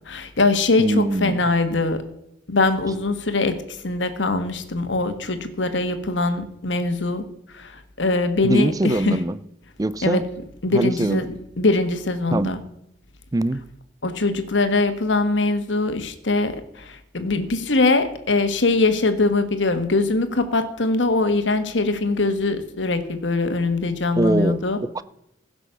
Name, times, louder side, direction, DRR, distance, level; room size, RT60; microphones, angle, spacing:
voice 1, 0.1-2.0 2.5-7.2 7.5-9.2 10.0-10.2 10.6-12.6 14.0-24.8, left 3 dB, 80° left, 1.4 m, -22 dB
voice 2, 0.8-1.4 8.4-9.4 9.8-10.2 10.7-11.2 12.3-12.5 13.3-13.7 24.2-25.0, right 1 dB, 20° right, 0.4 m, -22 dB
16.0 x 6.1 x 6.8 m
head